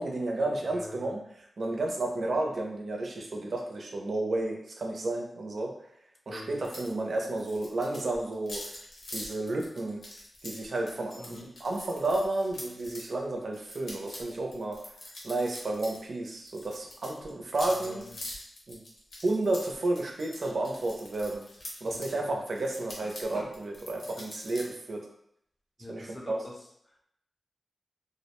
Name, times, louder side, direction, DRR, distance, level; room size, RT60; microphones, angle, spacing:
voice 1, 0.0-5.7 6.3-8.6 9.1-10.0 10.4-14.8 15.2-18.0 18.7-18.8 19.2-21.4 21.8-25.0 25.9-26.4, right 2 dB, 60° right, 1 dB, 0.5 m, -32 dB
voice 2, 0.7-1.1 6.3-6.6 11.2-11.6 17.8-18.2 21.9-22.2 23.0-23.5 25.8-26.6 26.9-27.1, left 1 dB, 20° left, 0 dB, 0.5 m, -46 dB
sound 1, 6.6-6.9 7.2-13.1 13.5-22.1 22.5-24.6, left 1 dB, 85° left, 0.7 m, -44 dB
2.4 x 2.1 x 2.9 m, 0.72 s
wide cardioid pair, 110°, 0 cm